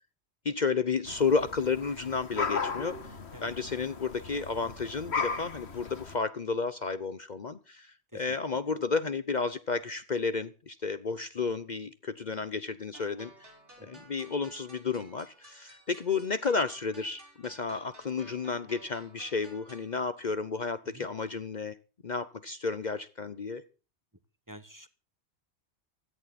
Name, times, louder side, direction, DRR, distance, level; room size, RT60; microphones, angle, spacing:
voice 1, 0.4-13.5 13.8-21.7 22.0-23.6, left 4 dB, 45° left, 15 dB, 0.9 m, -32 dB
sound 1, 1.1-6.2, left 5 dB, 70° left, 1.8 m, -36 dB
sound 2, 12.9-19.9, right 2 dB, 85° right, 5.4 m, -55 dB
voice 2, 24.5-24.9, right 1 dB, 15° right, 12 dB, 1.2 m, -48 dB
16.5 x 13.5 x 4.2 m, 0.34 s
omnidirectional pair, 1.2 m